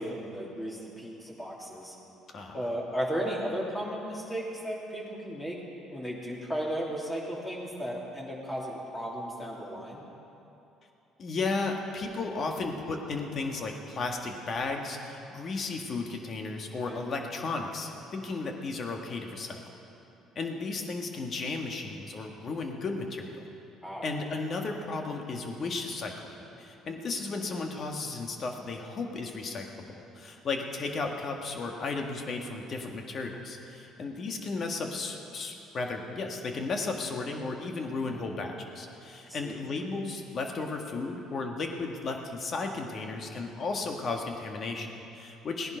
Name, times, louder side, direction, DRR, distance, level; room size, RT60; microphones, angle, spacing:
voice 1, 0.0-2.0 2.5-5.6 5.9-10.0 16.9-17.0 23.8-24.1 37.9-38.3 39.3-39.6, equal, 15° left, -3 dB, 3.1 m, -35 dB
voice 2, 2.3-2.7 11.2-19.6 20.3-23.5 24.0-45.8, left 3 dB, 50° left, 3 dB, 1.7 m, -34 dB
17.0 x 10.5 x 5.3 m, 2.9 s
supercardioid pair, 70°, 0 cm